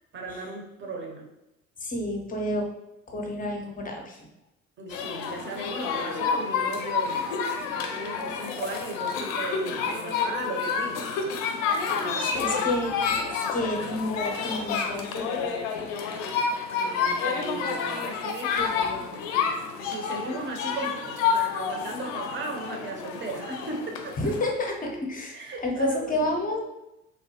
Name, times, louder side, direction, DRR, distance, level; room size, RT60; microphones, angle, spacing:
voice 1, 0.1-1.3 4.8-7.2 7.7-11.0 11.9-12.7 16.7-18.5 19.8-24.3 25.3-26.3, right 3 dB, 30° right, 1 dB, 0.8 m, -36 dB
voice 2, 1.8-2.7 3.1-4.3 12.2-15.9 18.6-19.2 24.2-25.4 25.6-26.6, left 1 dB, 20° left, 2 dB, 0.6 m, -30 dB
sound 1, 4.9-24.5, left 6 dB, 75° left, 0.6 m, -29 dB
3.3 x 2.1 x 2.7 m, 0.90 s
hypercardioid pair, 60°, 39 cm